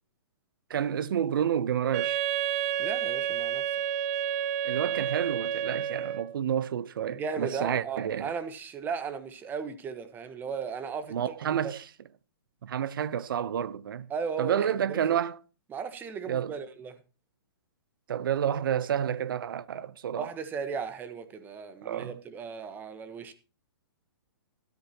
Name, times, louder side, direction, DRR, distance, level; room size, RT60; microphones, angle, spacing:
voice 1, 0.7-2.2 4.6-8.3 11.1-11.9 12.6-14.1 14.4-15.4 16.3-16.6 18.1-20.3 21.8-22.2, right 9 dB, 65° right, 0.8 m, -29 dB
Wind instrument woodwind instrument, 1.9-6.4, right 10 dB, 35° right, 0.7 m, -30 dB
voice 2, 2.8-3.6 7.1-11.1 11.5-11.7 14.1-15.0 15.7-16.9 20.2-23.3, right 6 dB, 15° right, 1.3 m, -36 dB
13.5 x 12.5 x 2.9 m
hypercardioid pair, 150°, 12 cm